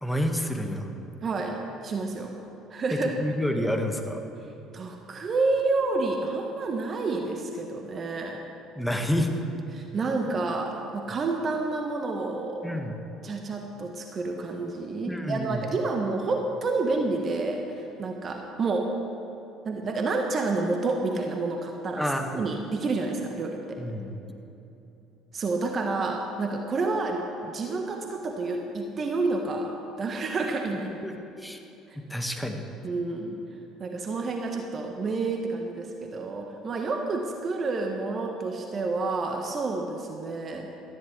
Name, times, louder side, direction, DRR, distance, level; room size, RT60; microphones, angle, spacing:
voice 1, 0.0-0.9 2.9-4.2 8.7-9.3 12.6-13.0 15.1-15.6 22.0-22.5 23.8-24.1 30.7-31.6 31.9-32.6, equal, 5° left, 4 dB, 1.6 m, -29 dB
voice 2, 1.2-1.6 1.8-2.3 2.7-3.2 4.7-8.4 9.7-12.8 13.2-18.9 19.6-22.1 22.3-23.8 25.3-30.9 32.8-33.4 33.8-40.7, right 3 dB, 40° right, 2 dB, 1.3 m, -29 dB
18.0 x 13.5 x 3.3 m, 3.0 s
hypercardioid pair, 60°, 0 cm